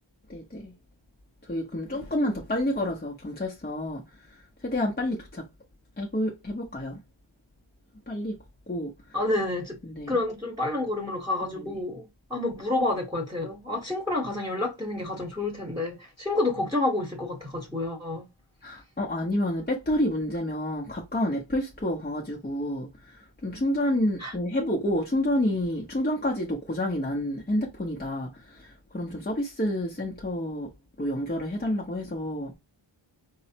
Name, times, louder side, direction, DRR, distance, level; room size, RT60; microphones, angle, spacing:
voice 1, 0.3-0.7 1.4-5.5 6.0-7.0 8.1-8.4 8.7-9.2 9.8-10.2 11.5-11.8 18.6-32.5, left 1 dB, 20° left, 0.8 m, -29 dB
voice 2, 9.1-9.8 10.1-18.3 24.2-24.3, left 2 dB, 5° right, 1.1 m, -29 dB
4.7 x 2.1 x 2.8 m
wide cardioid pair, 105°, 47 cm